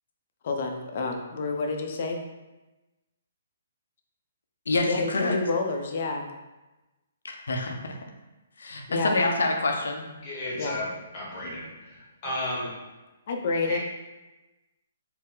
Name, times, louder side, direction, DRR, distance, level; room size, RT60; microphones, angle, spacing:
voice 1, 0.4-2.2 4.8-6.3 8.9-9.2 10.6-10.8 13.3-13.8, left 3 dB, 45° left, 3 dB, 0.5 m, -29 dB
voice 2, 4.7-5.4 7.5-8.0 8.6-10.1, left 2 dB, 90° left, 2 dB, 0.6 m, -26 dB
voice 3, 10.2-12.8 13.6-13.8, left 1 dB, 30° left, -4 dB, 0.8 m, -34 dB
4.3 x 2.0 x 3.8 m, 1.1 s
hypercardioid pair, 165°, 0 cm